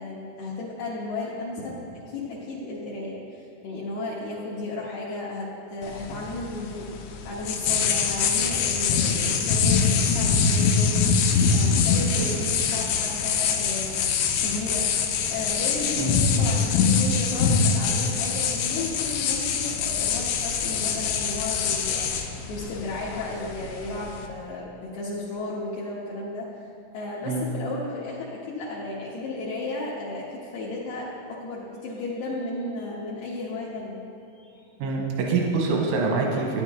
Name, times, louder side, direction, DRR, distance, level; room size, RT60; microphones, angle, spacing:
voice 1, 0.0-14.1 14.4-26.7 26.9-34.1 34.3-34.7, left 2 dB, 70° left, -6 dB, 2.9 m, -34 dB
sound 1, 5.8-24.3, left 5 dB, 90° left, 3.2 m, -24 dB
voice 2, 34.8-36.6, right 4 dB, 90° right, -1 dB, 3.5 m, -25 dB
15.0 x 10.0 x 3.6 m, 2.7 s
omnidirectional pair, 5.3 m